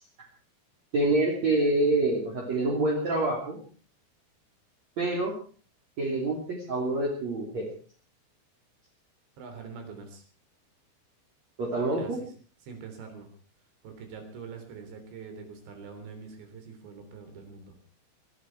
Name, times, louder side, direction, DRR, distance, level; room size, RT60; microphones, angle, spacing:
voice 1, 0.9-3.6 5.0-5.3 6.0-7.7 11.6-12.2, right 2 dB, 45° right, -2 dB, 3.9 m, -26 dB
voice 2, 9.4-10.2 12.0-12.3 12.6-13.3 13.8-17.8, right 5 dB, 90° right, 6 dB, 5.7 m, -44 dB
22.0 x 13.5 x 4.7 m, 0.41 s
omnidirectional pair, 5.0 m